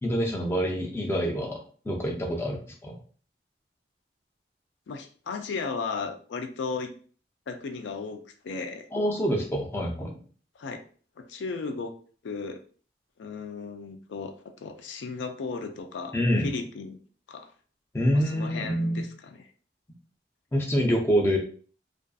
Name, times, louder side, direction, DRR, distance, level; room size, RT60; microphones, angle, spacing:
voice 1, 0.0-1.6 1.9-2.9 8.9-10.2 16.1-16.5 17.9-19.0 20.5-21.4, equal, 15° left, 1 dB, 0.3 m, -26 dB
voice 2, 4.9-6.9 7.5-8.9 10.6-10.8 11.2-11.9 12.2-12.6 13.2-16.1 16.4-17.0 17.3-17.5 18.1-19.5, left 4 dB, 85° left, 7 dB, 0.4 m, -35 dB
2.5 x 2.4 x 2.2 m, 0.43 s
head